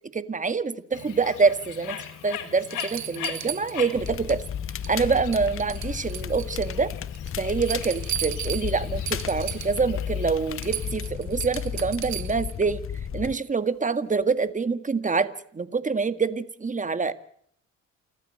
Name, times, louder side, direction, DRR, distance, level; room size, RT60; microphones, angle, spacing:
voice 1, 0.1-2.0 2.2-4.4 4.9-6.9 7.4-12.8 13.1-17.1, right 4 dB, 25° right, 12 dB, 1.9 m, -26 dB
Bird, 0.9-10.9, left 10 dB, 90° left, 3.5 m, -40 dB
sound 1, 2.0-2.1 2.7-4.4 4.7-5.1 5.3-6.8 7.2-9.9 10.2-10.3 10.6-12.5 14.2-14.3, right 11 dB, 65° right, 1.4 m, -35 dB
Crackle, 4.0-13.3, left 8 dB, 45° left, 1.1 m, -33 dB
29.0 x 13.5 x 7.8 m, 0.65 s
cardioid pair, 90°, 30 cm